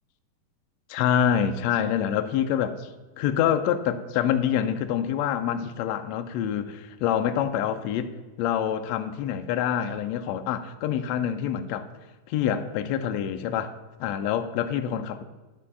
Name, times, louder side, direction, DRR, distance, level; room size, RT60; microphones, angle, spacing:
voice 1, 0.9-2.9 3.2-8.1 8.4-11.9 12.3-13.7 14.0-15.2, left 9 dB, 80° left, 1.6 m, -26 dB
10.5 x 5.2 x 5.4 m
omnidirectional pair, 3.5 m